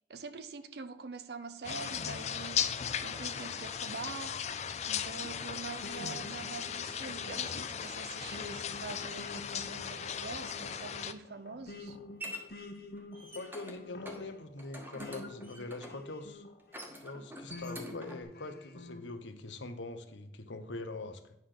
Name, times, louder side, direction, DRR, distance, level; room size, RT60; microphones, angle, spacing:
voice 1, 0.1-2.7 3.0-4.4 4.9-12.0, right 4 dB, 60° right, 0.6 m, -45 dB
sound 1, 1.6-11.1, left 8 dB, 35° left, 0.4 m, -37 dB
sound 2, 5.8-16.9 17.5-19.0, left 2 dB, 55° left, 1.0 m, -48 dB
sound 3, 11.4-12.4 13.0-13.8 14.1-14.2 14.6-16.0 16.6-18.2, equal, 10° right, 1.2 m, -46 dB
voice 2, 13.3-16.4 17.0-21.3, left 2 dB, 90° left, 0.9 m, -43 dB
9.5 x 3.9 x 6.6 m
head